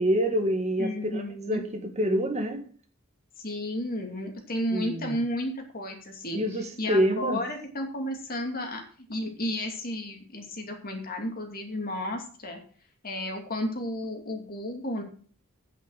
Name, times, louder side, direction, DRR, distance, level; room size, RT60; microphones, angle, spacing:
voice 1, 0.0-2.6 4.7-5.2 6.3-7.4, equal, 30° right, 5 dB, 1.6 m, -27 dB
voice 2, 0.8-1.6 3.4-8.8 9.1-12.6 13.0-15.0, left 1 dB, 45° left, 2 dB, 2.7 m, -33 dB
9.1 x 7.8 x 6.4 m, 0.43 s
head